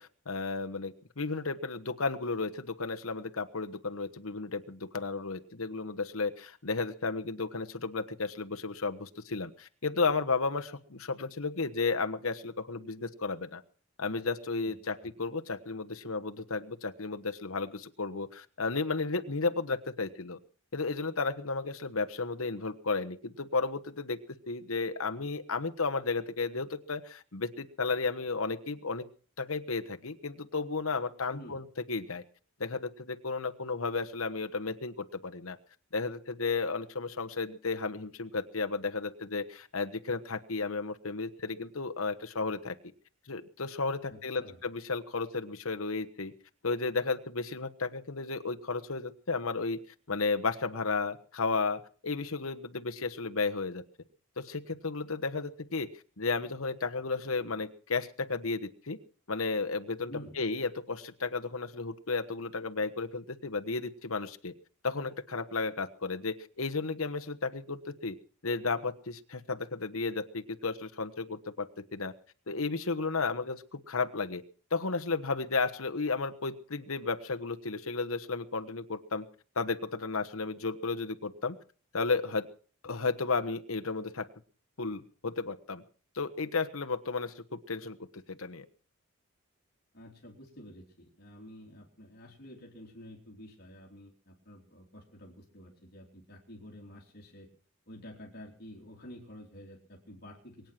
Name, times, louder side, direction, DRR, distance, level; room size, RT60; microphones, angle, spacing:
voice 1, 0.0-13.6 14.0-20.4 20.7-24.2 24.5-29.1 29.4-32.2 32.6-35.6 35.9-42.7 43.3-46.3 46.6-49.8 50.1-53.8 54.4-55.9 56.2-59.0 59.3-64.5 64.8-68.2 68.4-72.1 72.5-74.4 74.7-79.2 79.6-81.5 81.9-82.5 82.8-84.3 84.8-85.8 86.1-88.0 88.3-88.6, left 4 dB, 70° left, 7 dB, 1.2 m, -33 dB
voice 2, 14.7-15.1 31.3-31.6 44.1-44.6 60.1-60.4 89.9-97.5 97.9-100.7, equal, 45° left, -2 dB, 3.5 m, -50 dB
23.0 x 9.3 x 6.0 m, 0.43 s
head